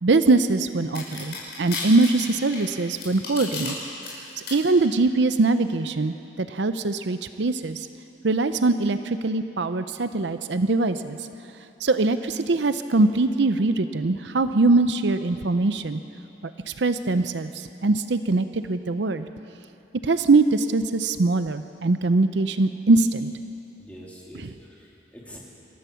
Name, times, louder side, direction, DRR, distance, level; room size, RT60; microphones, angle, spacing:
voice 1, 0.0-3.8 4.5-7.9 8.2-11.2 11.8-16.0 16.7-19.3 20.0-23.3 24.4-24.5, right 3 dB, 70° right, 10 dB, 0.6 m, -22 dB
sound 1, 0.9-3.7 4.0-4.5, left 4 dB, 60° left, 5.8 m, -33 dB
voice 2, 23.8-25.4, equal, 10° left, -5 dB, 3.3 m, -45 dB
27.0 x 14.0 x 7.0 m, 2.8 s
head